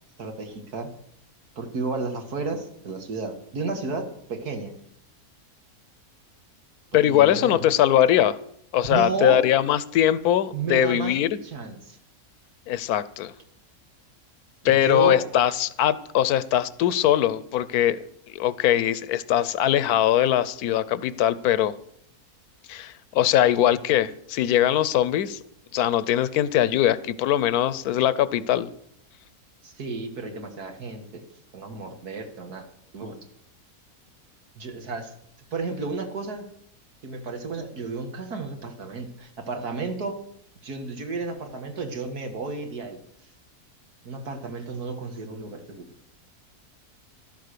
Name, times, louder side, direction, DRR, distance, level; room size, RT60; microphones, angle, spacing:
voice 1, 0.2-0.9 1.6-4.7 7.0-7.7 8.8-9.4 10.5-11.2 11.4-12.0 14.6-15.2 29.6-31.2 31.5-32.7 32.9-33.2 34.6-35.1 35.5-36.4 37.0-40.2 40.6-43.0 44.0-45.9, right 4 dB, 85° right, 6 dB, 2.4 m, -32 dB
voice 2, 6.9-8.4 8.7-11.3 12.7-13.3 14.6-18.0 18.3-21.7 22.7-25.4 25.7-28.7, left 11 dB, 80° left, 17 dB, 1.2 m, -21 dB
13.5 x 12.5 x 6.8 m, 0.69 s
omnidirectional pair, 1.6 m